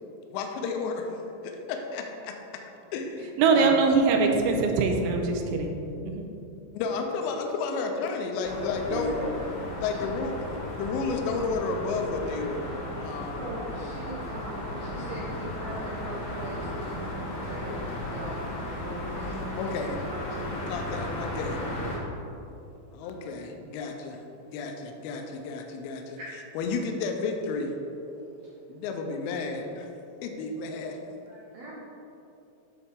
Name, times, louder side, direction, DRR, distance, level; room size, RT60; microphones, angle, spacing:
voice 1, 0.3-1.1 1.4-2.4 2.9-3.8 6.7-9.2 9.8-10.4 10.8-13.4 19.6-20.0 20.7-21.6 22.9-26.2 26.6-27.7 28.7-29.9 30.2-31.1, left 4 dB, 80° left, 3 dB, 2.7 m, -32 dB
voice 2, 3.4-5.7 6.0-6.3, right 4 dB, 90° right, 3 dB, 3.1 m, -22 dB
sound 1, 8.4-22.0, left 1 dB, 65° left, 1.6 m, -35 dB
voice 3, 8.9-9.3 9.6-10.1 13.4-17.1 17.4-19.8 20.1-20.6 26.2-26.3 28.0-28.5 31.3-31.7, right 1 dB, 75° right, -7 dB, 2.2 m, -39 dB
9.8 x 4.1 x 3.7 m, 2.8 s
omnidirectional pair, 5.3 m